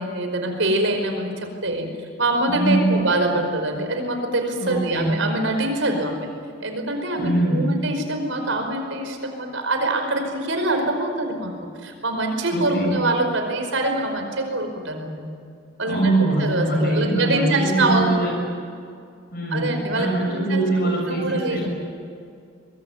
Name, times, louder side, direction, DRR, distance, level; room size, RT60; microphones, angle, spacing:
voice 1, 0.0-1.3 1.6-1.9 2.2-6.3 6.6-11.5 11.8-15.3 15.8-18.1 19.5-20.6 21.1-21.7, right 2 dB, 85° right, 5 dB, 5.2 m, -24 dB
voice 2, 2.5-2.9 4.6-5.2 7.2-7.7 12.5-13.0 15.9-18.4 19.3-21.7, right 2 dB, 50° left, -1 dB, 5.8 m, -23 dB
24.0 x 22.5 x 9.5 m, 2.4 s
head